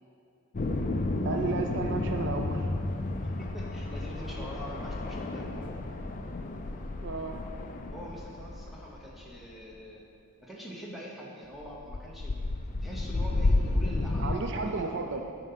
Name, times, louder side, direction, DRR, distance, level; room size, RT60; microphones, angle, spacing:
sound 1, 0.5-9.4 11.6-14.3, left 2 dB, 35° left, 0.4 m, -31 dB
voice 1, 1.2-2.7 7.0-7.4 14.2-15.2, right 4 dB, 50° right, 4 dB, 0.4 m, -33 dB
voice 2, 3.4-5.7 7.9-10.1 10.4-12.5 12.8-15.2, equal, ahead, -4 dB, 1.1 m, -44 dB
9.3 x 5.4 x 5.7 m, 2.5 s
head